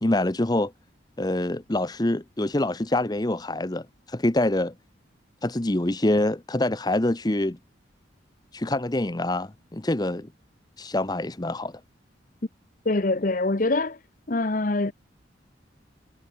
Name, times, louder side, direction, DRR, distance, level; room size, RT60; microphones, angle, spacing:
voice 1, 0.0-0.7 1.2-4.7 5.4-7.6 8.5-10.3 10.8-11.7, left 1 dB, 20° left, 0.8 m, -25 dB
voice 2, 12.8-14.0 14.3-14.9, left 2 dB, 45° left, 0.9 m, -24 dB
head